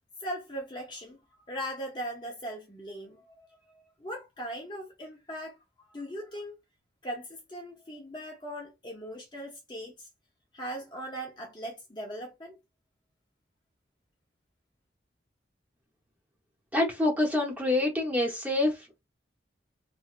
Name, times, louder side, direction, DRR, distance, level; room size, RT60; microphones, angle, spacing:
voice 1, 0.2-1.2 1.5-5.6 5.9-6.5 7.0-10.1 10.5-12.6, equal, 25° left, 0.7 m, -39 dB
voice 2, 16.7-19.0, left 2 dB, 10° right, 0.9 m, -26 dB
3.1 x 2.7 x 2.4 m
head